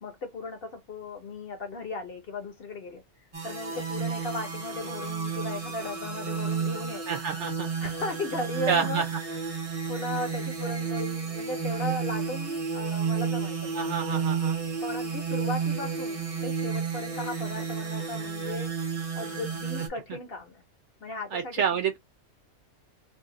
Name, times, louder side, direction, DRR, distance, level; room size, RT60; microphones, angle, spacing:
voice 1, 0.0-3.0 3.4-7.2 7.8-9.0 9.3-9.6 9.9-14.0 14.8-18.7 19.1-20.6 21.0-21.8, left 2 dB, 50° left, 0.8 m, -36 dB
sound 1, 3.3-19.9, right 6 dB, 30° right, 0.7 m, -31 dB
voice 2, 7.1-7.7 8.7-9.0 13.7-14.6 21.3-22.0, right 6 dB, 65° right, 0.8 m, -28 dB
2.7 x 2.3 x 3.7 m
omnidirectional pair, 1.5 m